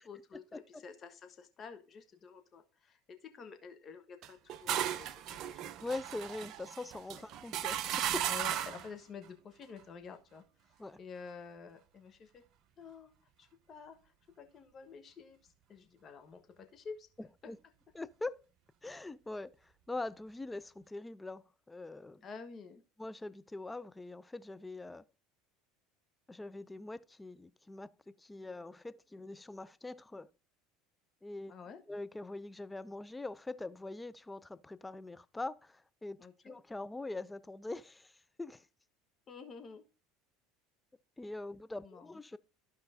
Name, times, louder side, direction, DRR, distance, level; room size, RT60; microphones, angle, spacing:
voice 1, 0.0-5.7 8.3-12.4 12.8-13.1 13.4-17.1 17.4-17.5 22.2-22.8 31.5-31.8 36.2-36.5 39.3-39.8 41.8-42.2, left 5 dB, 35° left, 1.3 m, -50 dB
sound 1, 4.2-8.9, right 11 dB, 50° right, 0.5 m, -36 dB
voice 2, 5.8-8.3 10.8-11.0 17.2-17.6 17.9-18.5 18.8-22.2 23.0-25.1 26.3-27.9 28.2-30.3 31.2-31.5 31.9-38.7 41.2-42.4, left 2 dB, 10° left, 0.4 m, -43 dB
14.0 x 5.1 x 2.7 m
figure-of-eight pair, 70°, 0 cm